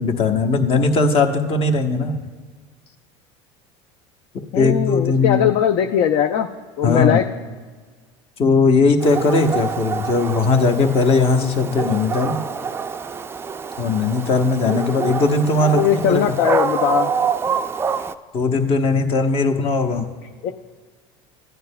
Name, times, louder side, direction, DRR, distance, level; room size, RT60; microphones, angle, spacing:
voice 1, 0.0-2.2 4.5-5.5 6.8-7.2 8.4-12.4 13.8-16.3 18.3-20.1, left 3 dB, 40° left, 4 dB, 1.0 m, -18 dB
voice 2, 4.5-6.5 6.8-7.3 15.7-17.1 20.4-20.5, left 9 dB, 55° left, 7 dB, 0.5 m, -19 dB
Dog, 9.0-18.1, right 6 dB, 15° right, 0.3 m, -26 dB
15.0 x 9.3 x 2.2 m, 1.5 s
supercardioid pair, 100°, 14 cm